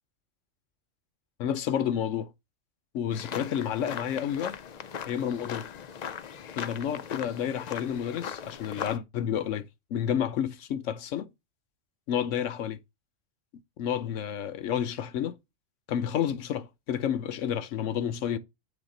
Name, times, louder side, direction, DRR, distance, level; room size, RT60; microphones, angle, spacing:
voice 1, 1.4-2.3 2.9-4.5 5.1-5.7 6.5-11.3 12.1-12.8 13.8-15.4 15.9-18.4, left 9 dB, 80° left, 1.0 m, -30 dB
sound 1, 3.1-9.0, left 8 dB, 65° left, 0.4 m, -39 dB
7.2 x 3.7 x 3.8 m
omnidirectional pair, 1.3 m